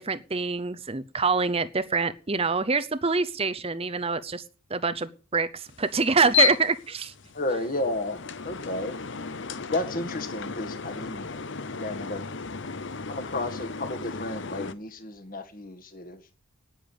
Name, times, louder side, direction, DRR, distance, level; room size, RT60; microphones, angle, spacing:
voice 1, 0.0-4.4 4.7-7.1, right 4 dB, 25° right, 0.7 m, -26 dB
sound 1, 5.7-14.7, left 7 dB, 55° left, 0.8 m, -33 dB
voice 2, 7.3-9.0 9.6-11.3 11.7-12.3 13.1-16.2, left 2 dB, 40° left, 1.8 m, -32 dB
10.0 x 9.8 x 8.8 m
head